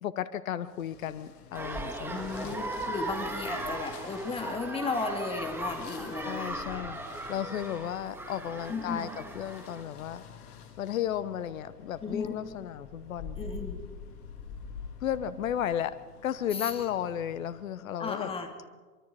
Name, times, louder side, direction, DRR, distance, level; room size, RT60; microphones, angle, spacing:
voice 1, 0.0-2.6 6.2-7.0 7.3-9.1 9.3-10.2 10.8-13.4 15.0-15.9 16.2-18.3, left 10 dB, 55° left, 15 dB, 1.0 m, -34 dB
sound 1, 0.7-17.8, left 5 dB, 40° left, 2.5 m, -48 dB
sound 2, 1.5-9.8, right 2 dB, 5° right, 1.9 m, -38 dB
voice 2, 2.1-6.9 8.7-9.1 12.0-12.4 13.4-13.8 16.5-16.8 18.0-18.5, left 4 dB, 10° left, 5 dB, 2.4 m, -35 dB
23.5 x 23.5 x 5.1 m, 1.4 s
figure-of-eight pair, 110°, 48 cm